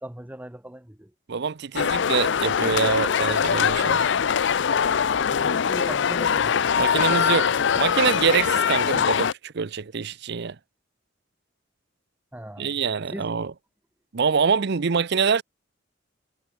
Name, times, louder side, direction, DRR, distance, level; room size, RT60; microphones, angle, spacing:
voice 1, 0.0-1.1 5.3-6.6 12.3-12.7 13.1-13.3, right 1 dB, 10° right, 1.0 m, -38 dB
voice 2, 1.3-4.0 6.8-10.6 12.6-13.5 14.1-15.4, right 6 dB, 60° right, 0.7 m, -25 dB
sound 1, 1.8-9.3, left 7 dB, 65° left, 0.5 m, -22 dB
head